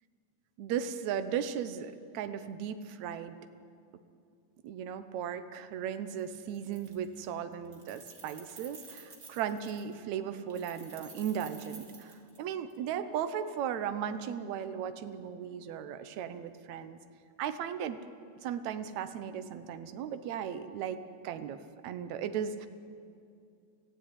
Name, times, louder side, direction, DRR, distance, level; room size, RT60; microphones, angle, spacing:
voice 1, 0.6-3.4 4.6-17.0 17.4-18.0 18.4-21.0 21.2-22.7, right 8 dB, 75° right, 10 dB, 1.7 m, -36 dB
Keys jangling, 6.1-6.2 6.5-7.3 7.5-9.9 10.5-12.8, right 4 dB, 30° right, 2.6 m, -52 dB
24.5 x 15.5 x 9.7 m, 2.4 s
omnidirectional pair, 4.5 m